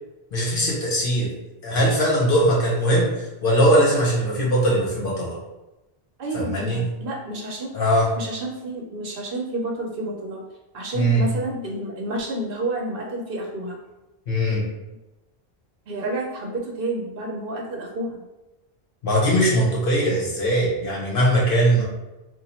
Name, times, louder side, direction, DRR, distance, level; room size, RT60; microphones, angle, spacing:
voice 1, 0.3-1.3 1.6-5.3 6.3-6.8 7.7-8.1 10.9-11.2 14.3-14.6 19.0-21.8, equal, 60° left, -4 dB, 1.2 m, -20 dB
voice 2, 6.2-7.7 8.2-10.4 10.7-13.8 15.9-18.2, right 2 dB, 65° right, -1 dB, 0.9 m, -30 dB
2.9 x 2.5 x 4.1 m, 1.0 s
omnidirectional pair, 1.1 m